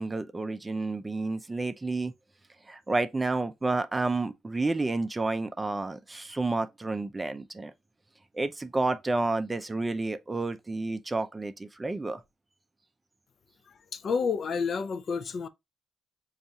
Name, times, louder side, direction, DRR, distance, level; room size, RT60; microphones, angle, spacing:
voice 1, 0.0-2.1 2.7-7.7 8.3-12.2, right 2 dB, 20° right, 0.4 m, -30 dB
voice 2, 13.9-15.5, left 5 dB, 50° left, 0.3 m, -29 dB
5.1 x 2.4 x 2.7 m
cardioid pair, 90°, 0 cm